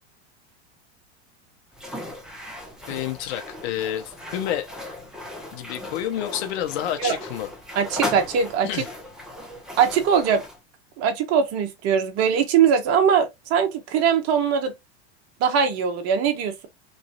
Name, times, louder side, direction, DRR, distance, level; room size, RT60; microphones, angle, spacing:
sound 1, 1.7-10.6, left 1 dB, ahead, 1.0 m, -36 dB
voice 1, 2.9-4.7 5.5-7.5 8.6-8.9, left 11 dB, 60° left, 0.8 m, -29 dB
voice 2, 7.7-8.9 9.8-10.4 11.0-14.7 15.4-16.7, right 7 dB, 45° right, 1.0 m, -21 dB
3.1 x 2.6 x 2.5 m
hypercardioid pair, 105°, 35 cm